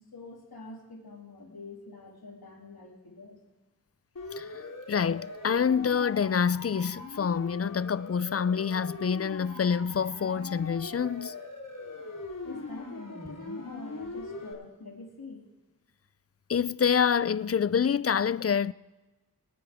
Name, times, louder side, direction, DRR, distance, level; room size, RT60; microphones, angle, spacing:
voice 1, 0.0-3.4 12.4-15.4, left 2 dB, 80° left, 3.0 m, -45 dB
Siren, 4.2-14.5, left 3 dB, 60° left, 3.5 m, -41 dB
voice 2, 4.9-11.3 16.5-18.7, left 7 dB, 40° left, 0.4 m, -27 dB
25.5 x 8.6 x 3.5 m
cardioid pair, 45°, 36 cm